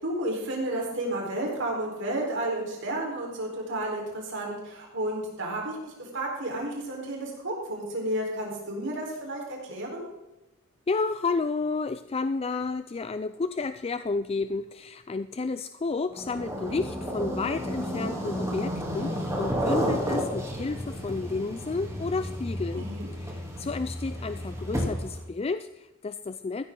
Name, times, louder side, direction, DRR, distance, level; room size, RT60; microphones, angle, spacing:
voice 1, 0.0-10.0 22.7-23.1, right 1 dB, 65° right, -1 dB, 4.3 m, -32 dB
voice 2, 10.9-22.9 23.2-26.6, left 4 dB, 30° left, 12 dB, 0.4 m, -31 dB
sound 1, 16.1-25.2, equal, 15° right, 3.0 m, -32 dB
15.0 x 13.0 x 3.9 m, 0.99 s
head